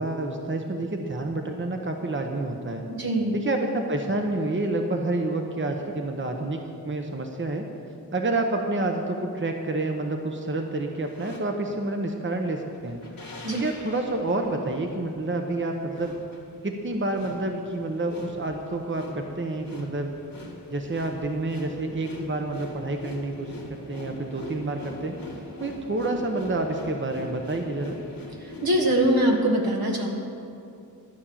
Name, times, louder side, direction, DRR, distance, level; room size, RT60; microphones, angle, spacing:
voice 1, 0.0-2.8 3.3-7.7 8.1-13.0 13.5-16.1 16.6-20.1 20.7-25.2 25.6-28.0, right 2 dB, 30° right, 3 dB, 1.0 m, -28 dB
voice 2, 2.9-3.3 13.4-13.6 28.4-30.1, right 1 dB, 70° right, 0 dB, 1.8 m, -23 dB
sound 1, 11.0-11.5 12.3-29.2, left 2 dB, 65° left, 1.8 m, -43 dB
12.5 x 5.5 x 8.7 m, 2.6 s
cardioid pair, 45°, 37 cm